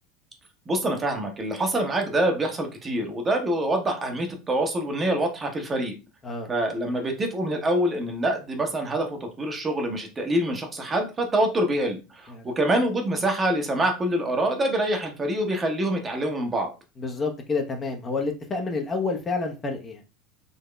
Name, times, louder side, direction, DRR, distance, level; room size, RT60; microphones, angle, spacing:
voice 1, 0.7-5.9 6.5-16.7, right 1 dB, 25° right, 4 dB, 0.9 m, -25 dB
voice 2, 17.0-20.0, left 4 dB, 30° left, 2 dB, 0.8 m, -29 dB
3.9 x 2.9 x 2.2 m, 0.30 s
hypercardioid pair, 75°, 0 cm